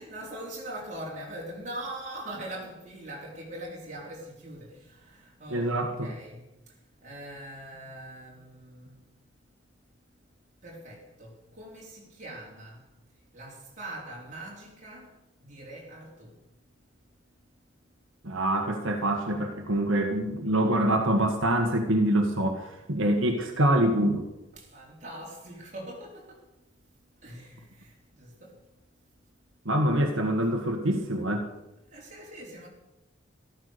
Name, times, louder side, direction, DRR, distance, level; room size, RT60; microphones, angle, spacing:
voice 1, 0.0-6.4 7.0-9.0 10.6-12.8 13.3-15.1 15.4-16.3 24.5-26.4 27.2-28.5 31.9-32.7, right 1 dB, 35° right, 4.6 m, -42 dB
voice 2, 5.5-6.1 18.2-24.3 29.6-31.5, right 1 dB, 80° right, 1.7 m, -25 dB
14.0 x 14.0 x 6.8 m
head